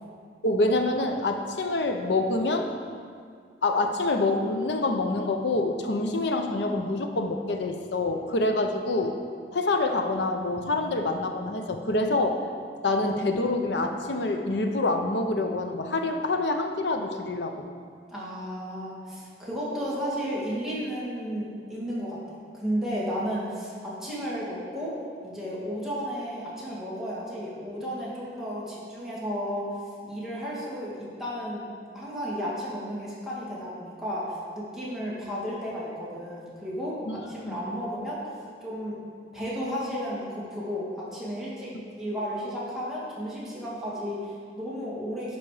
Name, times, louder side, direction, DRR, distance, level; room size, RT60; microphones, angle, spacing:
voice 1, 0.4-2.7 3.6-9.2 9.5-12.4 12.8-17.7 37.1-37.6, left 2 dB, 70° left, 5 dB, 0.7 m, -26 dB
voice 2, 18.1-22.2 22.5-24.9 25.2-29.7 30.0-38.2 38.6-39.0 39.3-45.4, equal, 5° right, -8 dB, 2.0 m, -33 dB
11.5 x 4.1 x 4.9 m, 2.1 s
head